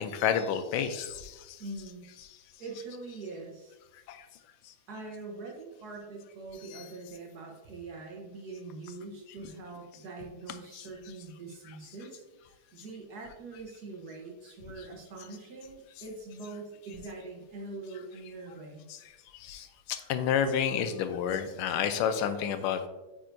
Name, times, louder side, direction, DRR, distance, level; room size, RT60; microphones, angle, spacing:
voice 1, 0.0-1.6 4.1-4.3 6.7-6.8 10.7-10.9 18.9-19.0 19.3-22.8, left 8 dB, 85° left, 9 dB, 1.5 m, -30 dB
voice 2, 1.6-2.0 2.6-3.8 4.9-18.9, right 3 dB, 55° right, 0 dB, 1.3 m, -43 dB
8.7 x 4.6 x 2.6 m, 1.1 s
omnidirectional pair, 2.3 m